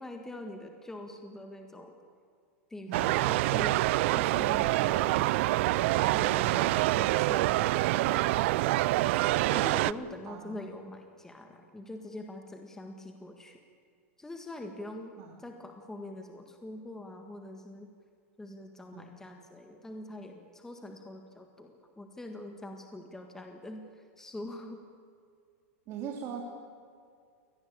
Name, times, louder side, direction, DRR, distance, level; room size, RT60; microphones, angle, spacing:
voice 1, 0.0-2.0 2.7-5.3 6.0-8.5 9.5-13.6 14.2-15.1 15.4-17.9 18.4-24.8, left 1 dB, 5° left, 4 dB, 1.7 m, -44 dB
sound 1, 2.9-9.9, right 18 dB, 55° right, 0.5 m, -26 dB
voice 2, 10.3-10.6 15.2-15.4 18.9-19.1 25.9-26.7, right 6 dB, 40° right, -1 dB, 3.0 m, -40 dB
23.0 x 18.0 x 8.7 m, 2.3 s
supercardioid pair, 145°, 8 cm